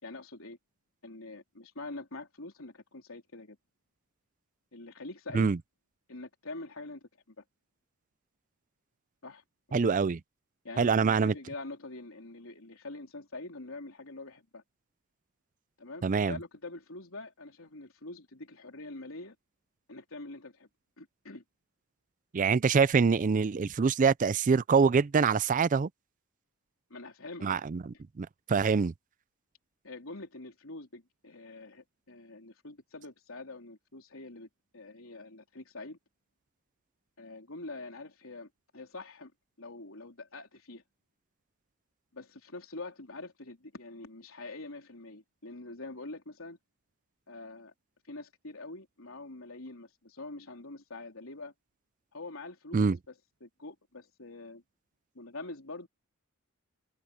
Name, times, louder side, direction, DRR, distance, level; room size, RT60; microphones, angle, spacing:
voice 1, 0.0-0.6 1.0-3.6 4.7-5.5 6.1-7.4 9.2-10.0 10.6-14.6 15.8-19.4 19.9-20.7 21.0-21.4 26.9-27.5 29.8-36.0 37.2-39.3 39.6-40.8 42.1-46.6 47.3-47.7 48.1-51.5 52.1-54.6 55.1-55.9, left 2 dB, 75° left, 3.8 m, -45 dB
voice 2, 9.7-10.2 10.8-11.3 16.0-16.4 22.3-25.9 27.4-28.9 52.7-53.0, right 5 dB, 40° right, 0.4 m, -25 dB
open air
head